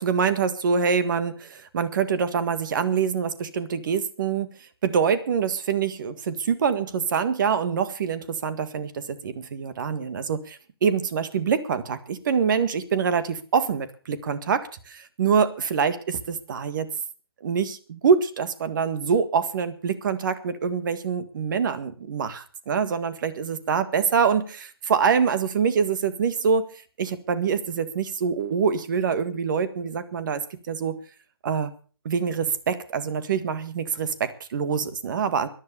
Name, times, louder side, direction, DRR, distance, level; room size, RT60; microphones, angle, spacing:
voice 1, 0.0-4.5 4.8-16.9 17.4-26.7 27.0-30.4 30.7-31.0 31.4-31.7 32.1-35.5, right 6 dB, 50° right, 13 dB, 1.8 m, -25 dB
14.0 x 11.0 x 6.8 m, 0.40 s
figure-of-eight pair, 135°, 13 cm